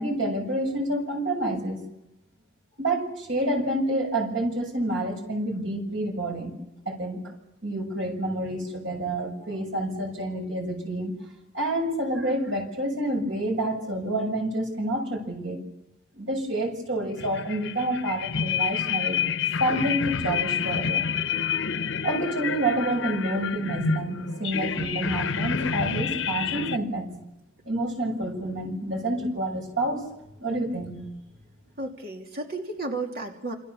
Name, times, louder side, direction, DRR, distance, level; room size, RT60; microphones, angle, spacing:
voice 1, 0.0-1.8 2.8-6.5 6.9-7.2 7.6-11.1 11.5-15.6 16.1-19.3 19.6-21.1 21.5-27.1 27.6-30.1 30.4-30.9, right 1 dB, 85° right, 2 dB, 7.5 m, -28 dB
sound 1, 17.1-26.8, left 7 dB, 85° left, 0.9 m, -28 dB
voice 2, 31.8-33.5, right 2 dB, 50° right, 2 dB, 2.9 m, -33 dB
28.5 x 27.5 x 7.2 m, 0.87 s
head